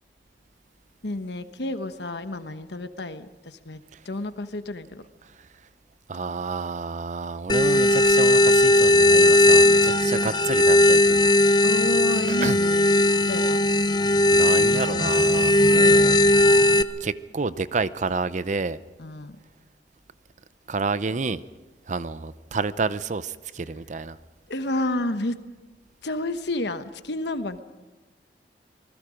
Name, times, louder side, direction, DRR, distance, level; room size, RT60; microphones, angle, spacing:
voice 1, 1.0-5.0 11.6-13.7 19.0-19.4 24.5-25.4 26.0-27.6, left 2 dB, 70° left, 10 dB, 1.2 m, -30 dB
voice 2, 6.1-11.3 12.3-12.6 14.3-16.2 17.0-18.8 20.7-21.4 21.9-24.2, right 4 dB, 45° right, 15 dB, 0.6 m, -29 dB
sound 1, 7.5-16.8, left 1 dB, 25° left, 0.6 m, -18 dB
26.5 x 20.0 x 5.1 m, 1.3 s
head